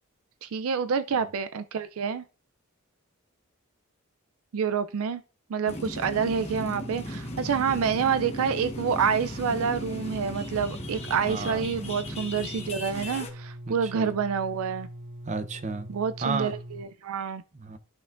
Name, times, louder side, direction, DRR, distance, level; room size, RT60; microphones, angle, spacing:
voice 1, 0.4-2.2 4.5-5.2 5.5-14.9 15.9-17.4, right 6 dB, 70° right, 0.4 m, -28 dB
sound 1, 5.7-13.3, left 1 dB, 30° left, 1.1 m, -37 dB
sound 2, 6.5-16.9, equal, 90° right, 2.2 m, -42 dB
voice 2, 11.3-11.6 13.7-14.1 15.3-15.9 16.2-16.5 17.5-17.8, right 4 dB, 30° right, 0.6 m, -32 dB
13.0 x 5.7 x 2.5 m
head